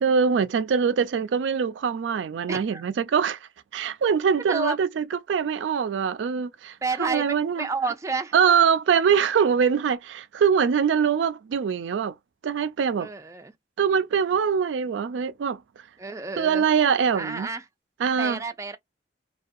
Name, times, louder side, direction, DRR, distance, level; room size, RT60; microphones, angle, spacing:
voice 1, 0.0-3.4 3.7-7.7 8.3-12.1 12.4-13.1 13.8-15.6 16.4-17.5 18.0-18.4, right 6 dB, 90° right, 0.4 m, -23 dB
voice 2, 2.5-2.9 4.5-4.8 6.8-8.3 13.0-13.5 16.0-16.6 17.1-17.6 18.2-18.8, right 3 dB, 15° right, 0.3 m, -30 dB
2.4 x 2.3 x 2.5 m
head